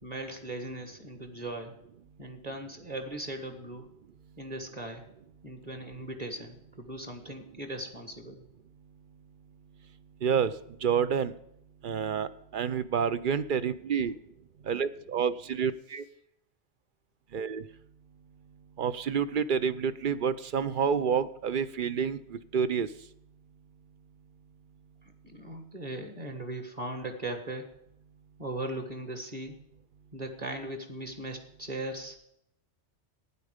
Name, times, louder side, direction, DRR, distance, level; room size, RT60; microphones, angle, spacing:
voice 1, 0.0-1.7 2.2-3.9 4.4-5.1 5.4-8.4 25.2-27.7 28.4-29.6 30.1-32.2, right 1 dB, 35° right, 6 dB, 1.8 m, -38 dB
voice 2, 10.2-10.5 10.8-11.3 11.8-14.1 14.7-16.0 17.3-17.6 18.8-22.9, right 7 dB, 55° right, 14 dB, 0.6 m, -28 dB
12.5 x 9.6 x 5.0 m, 0.76 s
omnidirectional pair, 1.2 m